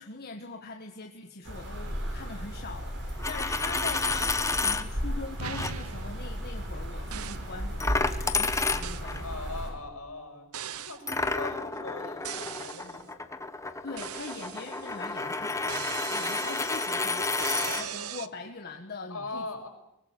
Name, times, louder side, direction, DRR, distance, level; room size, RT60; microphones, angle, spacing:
voice 1, 0.0-9.5 13.8-19.5, left 3 dB, 45° left, 3 dB, 1.6 m, -42 dB
sound 1, 1.4-9.7, equal, 55° right, 7.2 m, -35 dB
Coin (dropping), 3.1-4.8 5.5-5.7 7.8-9.2 11.1-17.8, left 3 dB, 15° left, 1.2 m, -30 dB
sound 2, 4.0-5.0 5.4-6.7 7.1-7.6 8.8-9.1 10.5-11.1 12.2-13.0 14.0-15.1 15.7-18.3, right 8 dB, 70° right, 0.9 m, -40 dB
voice 2, 9.2-10.5 10.8-13.4 19.1-19.7, left 2 dB, 70° left, 3 dB, 6.0 m, -40 dB
23.5 x 19.5 x 9.4 m, 0.83 s
head